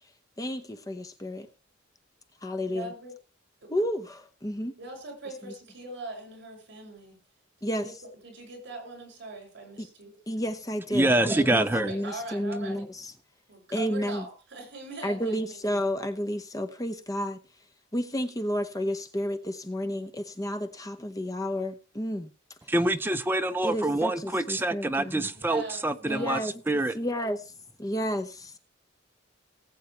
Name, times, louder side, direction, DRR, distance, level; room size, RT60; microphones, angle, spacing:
voice 1, 0.4-1.5 2.4-2.9 3.7-4.7 5.4-5.5 7.6-8.0 9.8-9.9 10.3-13.1 13.7-14.3 15.0-17.4 17.9-22.3 23.6-25.3 26.1-26.5 26.9-27.5 27.8-28.6, equal, 20° left, 0.8 m, -31 dB
voice 2, 2.6-3.1 3.6-3.7 4.8-7.2 7.6-7.9 8.2-10.2 11.1-12.8 13.5-15.6 25.3-26.4, right 2 dB, 60° right, 6.7 m, -41 dB
voice 3, 10.9-11.9 22.7-26.4 26.7-27.0, right 2 dB, 10° right, 0.7 m, -26 dB
19.5 x 8.3 x 3.4 m
head